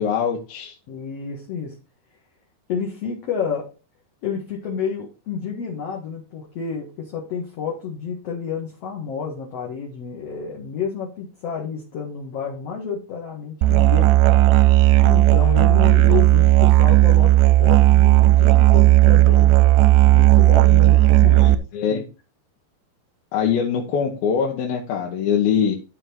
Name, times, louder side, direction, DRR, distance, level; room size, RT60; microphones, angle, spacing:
voice 1, 0.0-0.8 21.2-22.0 23.3-25.8, left 7 dB, 80° left, 0 dB, 3.0 m, -23 dB
voice 2, 0.9-1.8 2.7-3.7 4.2-14.5 15.0-19.5 20.0-21.6 21.9-22.0, left 6 dB, 50° left, -1 dB, 2.3 m, -30 dB
Musical instrument, 13.6-21.6, right 17 dB, 80° right, 2.0 m, -14 dB
12.0 x 4.6 x 4.3 m, 0.31 s
omnidirectional pair, 4.2 m